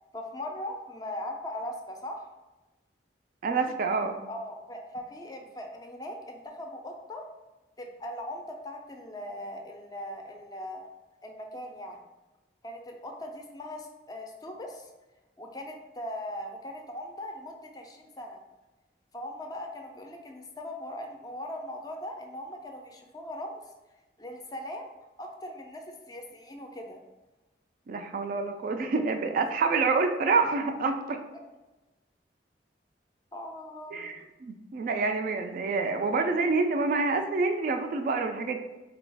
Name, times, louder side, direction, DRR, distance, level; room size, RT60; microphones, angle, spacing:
voice 1, 0.1-2.2 4.3-7.2 7.8-10.8 11.2-12.0 12.6-14.9 15.4-18.4 19.1-23.6 24.2-24.9 25.2-27.0 33.3-34.1, left 1 dB, 20° left, 3 dB, 0.4 m, -40 dB
voice 2, 3.4-4.2 27.9-31.2 33.9-34.1 34.4-38.5, right 4 dB, 50° right, 6 dB, 0.3 m, -27 dB
3.9 x 2.3 x 3.3 m, 1.1 s
head